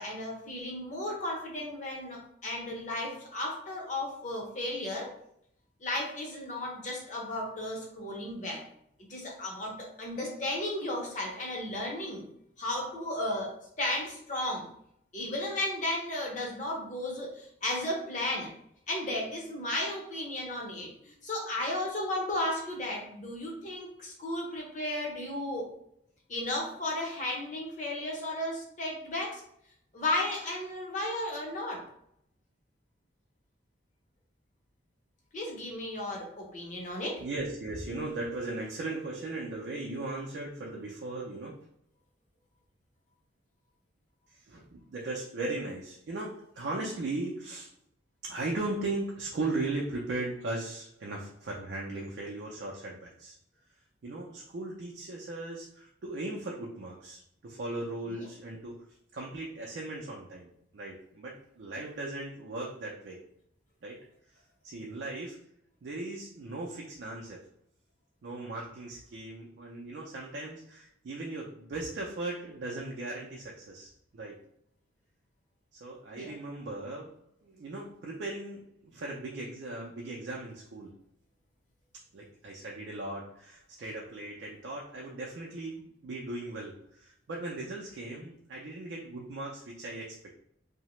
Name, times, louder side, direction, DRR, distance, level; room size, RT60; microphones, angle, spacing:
voice 1, 0.0-5.1 5.8-8.6 9.1-12.2 12.6-14.6 15.1-18.5 18.9-25.7 26.3-29.4 29.9-31.8 35.3-37.2 58.1-58.3 76.1-76.3, left 1 dB, 40° left, -1 dB, 0.7 m, -34 dB
voice 2, 37.2-41.6 44.3-47.7 48.2-53.4 54.0-58.8 59.1-63.2 63.8-64.0 64.6-65.4 65.8-67.4 68.2-74.4 75.8-77.1 77.4-80.9 82.1-90.3, right 2 dB, 65° right, -2 dB, 0.4 m, -38 dB
2.8 x 2.0 x 3.0 m, 0.72 s
head